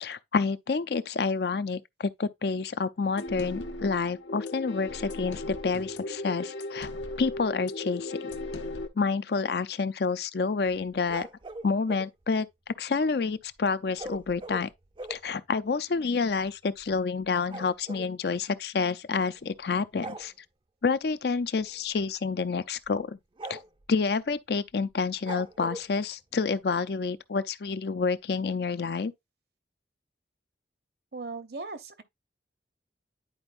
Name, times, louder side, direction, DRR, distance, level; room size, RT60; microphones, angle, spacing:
voice 1, 0.0-6.9 7.2-8.3 9.0-11.3 11.6-12.5 12.8-14.7 15.1-20.3 20.8-23.2 23.5-23.6 23.9-29.1, left 4 dB, 60° left, 0.5 m, -28 dB
sound 1, 3.2-8.9, left 2 dB, 85° left, 0.9 m, -37 dB
sound 2, 10.7-12.1 14.0-15.3 16.0-16.1 16.3-16.5 16.8-18.1 19.2-19.6 19.9-20.3 21.6-21.9 22.2-22.3 22.8-23.0 23.4-23.9 25.2-25.9, right 2 dB, 25° right, 0.4 m, -41 dB
voice 2, 31.1-32.0, right 3 dB, 60° right, 0.8 m, -38 dB
10.5 x 4.5 x 2.5 m
head